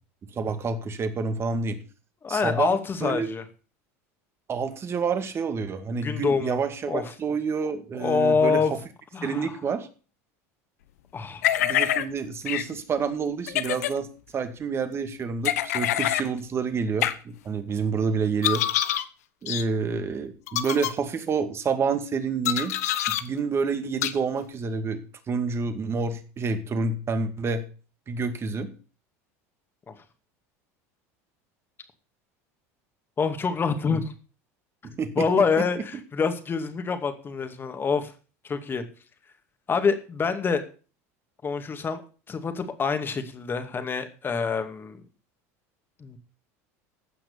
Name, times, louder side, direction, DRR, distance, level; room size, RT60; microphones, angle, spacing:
voice 1, 0.3-1.8 2.3-3.3 4.5-8.6 9.2-9.9 11.6-14.1 14.3-18.6 19.4-22.7 23.1-27.6 28.1-28.7 33.8-34.0 34.8-35.3, right 5 dB, 30° right, 9 dB, 2.3 m, -28 dB
voice 2, 2.2-3.4 6.0-6.6 6.9-7.0 8.0-8.7 9.1-9.5 11.1-11.5 29.9-30.0 33.2-34.1 35.2-38.1 38.4-38.8 39.7-40.6 41.4-42.0 42.3-45.0 46.0-46.2, left 5 dB, 25° left, 8 dB, 2.4 m, -26 dB
sound 1, 11.4-12.0 12.5-12.6 13.5-13.9 15.4-16.3 17.0-17.1 18.4-19.0 19.5-19.6 20.5-20.9 22.4-23.2 24.0-24.1, left 12 dB, 90° left, 1.0 m, -25 dB
15.5 x 5.9 x 6.9 m, 0.37 s
supercardioid pair, 105°, 8 cm